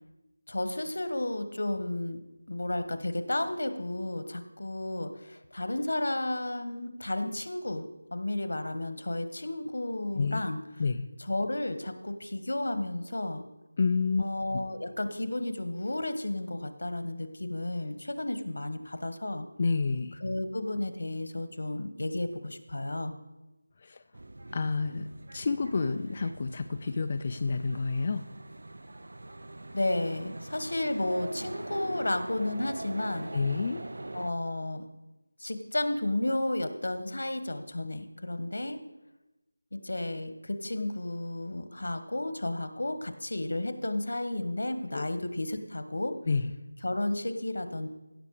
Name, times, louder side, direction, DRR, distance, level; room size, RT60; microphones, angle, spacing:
voice 1, 0.5-2.2 2.5-10.6 11.2-13.4 14.2-19.5 20.2-23.1 29.7-33.4 34.1-34.9 35.4-38.8 39.7-46.2 46.8-47.9, left 1 dB, 70° left, 10 dB, 1.3 m, -32 dB
voice 2, 13.8-14.3 19.6-20.1 23.8-24.0 24.5-25.1 25.3-28.2 33.3-33.8 44.9-45.0 46.3-46.4, left 4 dB, 20° left, 8 dB, 0.3 m, -29 dB
sound 1, 24.1-34.3, right 2 dB, 60° right, 0.6 m, -43 dB
16.0 x 6.8 x 4.9 m, 1.0 s
figure-of-eight pair, 180°, 0 cm